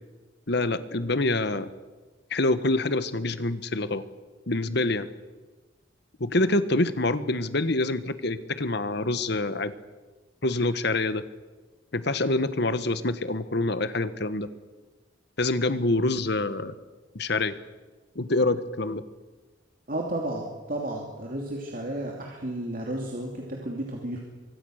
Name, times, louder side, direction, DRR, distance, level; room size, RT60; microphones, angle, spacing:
voice 1, 0.5-1.7 2.3-4.0 4.5-5.1 6.2-9.7 10.4-11.2 11.9-14.5 15.4-16.7 17.1-17.5 18.1-19.0, left 2 dB, 55° left, 13 dB, 1.3 m, -26 dB
voice 2, 19.9-24.2, right 1 dB, 45° right, 0 dB, 2.9 m, -32 dB
24.5 x 24.0 x 6.5 m, 1.3 s
head